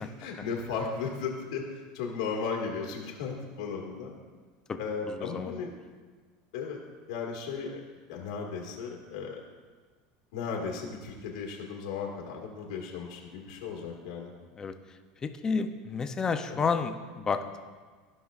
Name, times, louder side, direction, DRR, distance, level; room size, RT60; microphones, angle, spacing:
voice 1, 0.0-4.1 4.8-5.7 6.5-6.8 7.1-7.8 8.1-9.4 10.3-14.3 16.5-16.6, left 5 dB, 90° left, -1 dB, 1.6 m, -35 dB
voice 2, 5.1-5.6 14.6-14.7 15.2-17.6, left 5 dB, 20° left, 7 dB, 0.5 m, -31 dB
15.0 x 5.4 x 2.4 m, 1.5 s
supercardioid pair, 145°, 3 cm